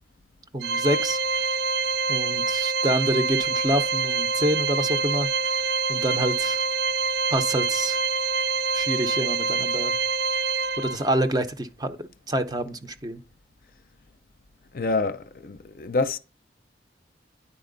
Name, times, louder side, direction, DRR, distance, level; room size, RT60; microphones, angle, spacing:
voice 1, 0.5-1.5 2.1-6.6 7.3-8.0 8.7-9.9 10.8-12.0 12.3-13.2, right 1 dB, 20° right, 0.6 m, -27 dB
Organ, 0.6-11.3, right 4 dB, 70° right, 0.4 m, -26 dB
voice 2, 14.7-16.2, left 3 dB, 50° left, 0.5 m, -27 dB
9.6 x 4.3 x 3.9 m
head